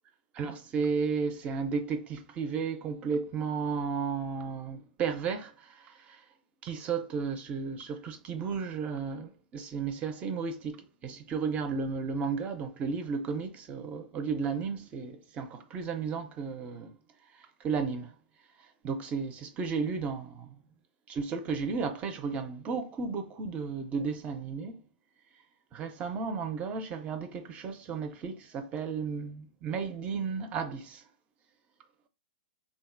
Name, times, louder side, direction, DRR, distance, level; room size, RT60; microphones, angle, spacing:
voice 1, 0.3-6.2 6.6-17.0 17.6-18.1 18.8-20.6 21.1-24.8 25.7-31.0, right 5 dB, 25° right, 0.5 m, -33 dB
3.7 x 2.1 x 2.4 m
hypercardioid pair, 110°, 5 cm